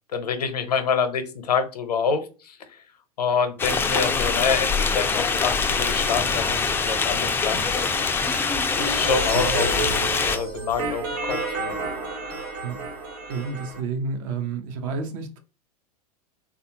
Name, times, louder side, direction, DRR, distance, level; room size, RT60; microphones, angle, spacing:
voice 1, 0.1-2.8 3.2-8.5 8.7-9.7 10.2-11.8, left 6 dB, 85° left, 0.6 m, -27 dB
sound 1, 3.6-10.4, left 4 dB, 10° left, 0.3 m, -24 dB
sound 2, 8.8-13.8, right 3 dB, 75° right, 1.3 m, -30 dB
voice 2, 13.3-15.4, right 5 dB, 55° right, 0.8 m, -30 dB
3.5 x 2.4 x 2.8 m
hypercardioid pair, 95°, 20 cm